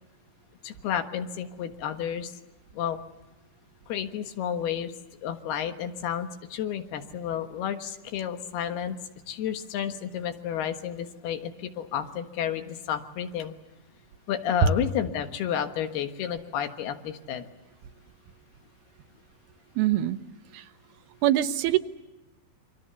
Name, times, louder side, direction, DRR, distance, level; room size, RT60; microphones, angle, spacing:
voice 1, 0.6-2.3 2.7-3.0 3.9-4.9 5.2-9.0 9.3-13.5 14.3-17.4, left 9 dB, 85° left, 7 dB, 3.5 m, -31 dB
voice 2, 19.8-20.2 20.5-20.6 21.2-21.8, right 10 dB, 90° right, 9 dB, 3.0 m, -22 dB
28.5 x 24.5 x 7.0 m, 1.1 s
omnidirectional pair, 4.4 m